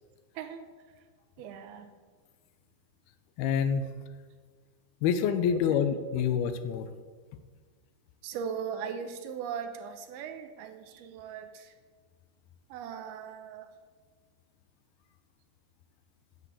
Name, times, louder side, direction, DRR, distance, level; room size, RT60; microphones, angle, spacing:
voice 1, 0.4-0.7 1.4-1.9 5.5-6.0 8.2-11.7 12.7-13.7, right 7 dB, 80° right, 8 dB, 2.6 m, -39 dB
voice 2, 3.4-3.9 5.0-6.9, left 7 dB, 80° left, 10 dB, 2.6 m, -27 dB
10.0 x 7.4 x 8.2 m, 1.5 s
omnidirectional pair, 4.6 m